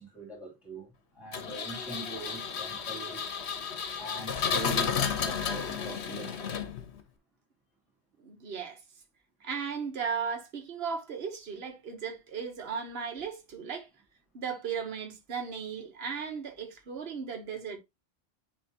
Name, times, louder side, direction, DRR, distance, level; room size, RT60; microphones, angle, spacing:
voice 1, 0.0-3.3 3.9-6.6, right 1 dB, ahead, 2.7 m, -42 dB
Engine, 1.3-7.0, left 7 dB, 80° left, 1.2 m, -32 dB
voice 2, 8.2-8.8 9.4-13.9 14.3-17.8, right 6 dB, 65° right, 1.4 m, -36 dB
9.9 x 3.3 x 2.9 m
omnidirectional pair, 1.1 m